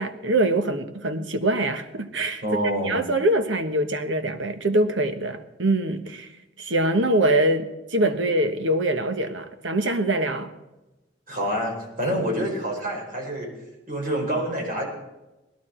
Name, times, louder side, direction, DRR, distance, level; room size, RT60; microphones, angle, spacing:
voice 1, 0.0-2.4 2.8-6.3 6.6-10.5, right 1 dB, 75° right, 1.3 m, -24 dB
voice 2, 2.4-3.0 11.3-13.5 13.9-14.9, equal, 45° right, 5.1 m, -27 dB
20.0 x 11.5 x 4.5 m
head